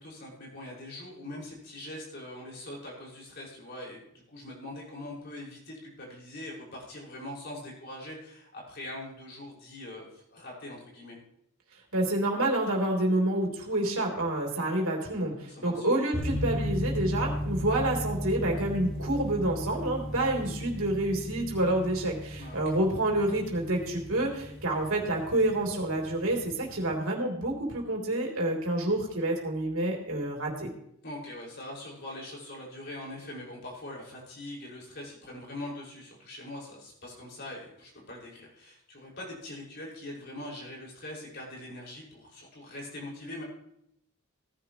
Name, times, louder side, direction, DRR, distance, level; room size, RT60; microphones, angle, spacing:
voice 1, 0.0-4.0 4.3-11.2 15.4-15.8 20.3-20.6 22.4-22.6 31.0-43.4, left 1 dB, 50° left, -3 dB, 5.5 m, -42 dB
voice 2, 11.9-30.7, right 1 dB, 75° right, 0 dB, 3.4 m, -28 dB
sound 1, 16.1-26.9, equal, 5° left, 4.5 m, -36 dB
18.0 x 10.5 x 3.0 m, 0.75 s
head